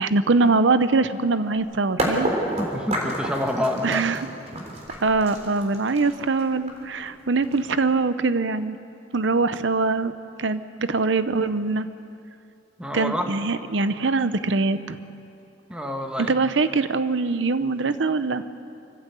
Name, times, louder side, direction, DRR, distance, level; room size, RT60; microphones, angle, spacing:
voice 1, 0.0-2.3 3.8-4.2 5.0-8.8 9.1-10.1 10.4-11.9 12.9-15.0 16.3-18.4, right 3 dB, 75° right, 12 dB, 0.8 m, -23 dB
sound 1, 2.0-7.8, right 1 dB, 40° right, 3.7 m, -29 dB
voice 2, 2.6-4.0 12.8-13.3 15.7-16.4, left 1 dB, 5° right, 3 dB, 1.7 m, -27 dB
26.0 x 15.0 x 8.3 m, 2.6 s
head